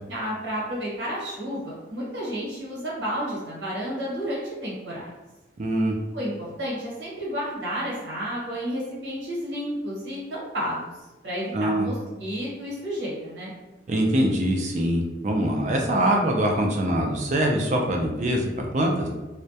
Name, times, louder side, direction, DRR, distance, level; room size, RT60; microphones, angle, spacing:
voice 1, 0.1-5.1 6.1-10.8 11.2-13.5, equal, 90° right, -6 dB, 1.1 m, -31 dB
voice 2, 5.6-5.9 11.5-11.9 13.9-19.1, right 1 dB, 40° right, 1 dB, 0.3 m, -23 dB
2.2 x 2.1 x 2.7 m, 1.1 s
head